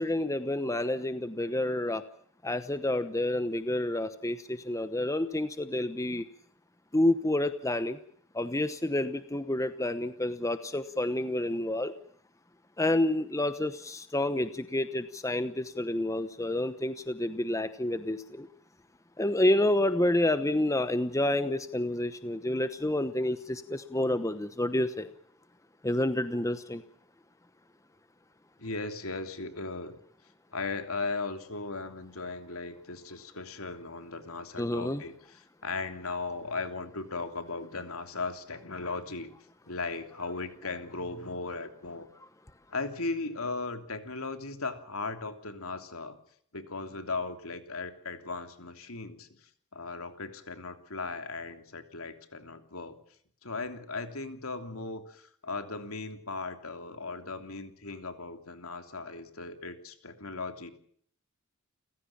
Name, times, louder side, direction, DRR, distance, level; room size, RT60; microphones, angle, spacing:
voice 1, 0.0-2.0 2.4-6.3 6.9-8.0 8.3-11.9 12.8-18.5 19.2-25.1 25.8-26.8 34.6-35.0, left 1 dB, 15° left, 11 dB, 1.0 m, -29 dB
voice 2, 28.6-30.0 30.5-39.3 39.6-42.1 42.7-46.2 46.5-49.3 49.7-53.0 53.4-60.7, left 3 dB, 70° left, 8 dB, 3.1 m, -37 dB
29.5 x 16.0 x 7.3 m, 0.62 s
head